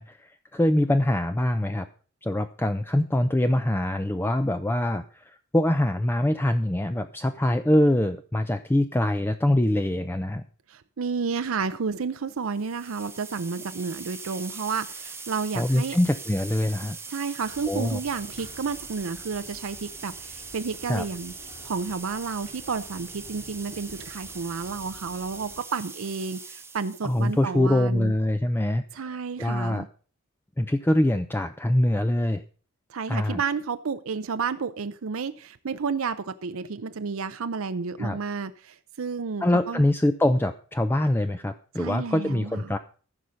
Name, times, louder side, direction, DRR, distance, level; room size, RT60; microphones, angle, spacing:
voice 1, 0.0-1.9 2.2-10.4 15.6-17.0 17.7-18.0 20.9-21.0 27.0-29.0 29.4-29.8 30.6-32.4 33.1-33.4 38.0-38.2 39.4-42.8, left 1 dB, 10° left, 0.5 m, -24 dB
voice 2, 10.7-16.0 16.8-21.3 21.6-28.1 28.9-29.9 32.9-39.9 41.8-42.7, right 5 dB, 80° right, 0.6 m, -31 dB
sound 1, 12.4-27.4, right 4 dB, 10° right, 0.9 m, -41 dB
sound 2, 17.4-25.6, equal, 50° left, 3.9 m, -50 dB
14.5 x 5.5 x 6.3 m
head